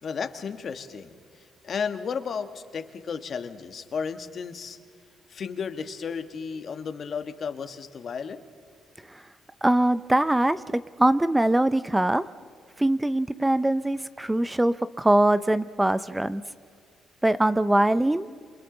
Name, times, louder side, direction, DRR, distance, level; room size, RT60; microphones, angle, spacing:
voice 1, 0.0-4.8 5.3-8.4, left 6 dB, 50° left, 8 dB, 1.4 m, -33 dB
voice 2, 9.6-12.2 12.8-16.4 17.2-18.3, right 1 dB, 10° right, 14 dB, 0.5 m, -22 dB
28.5 x 27.5 x 3.9 m, 2.1 s
cardioid pair, 90°, 0 cm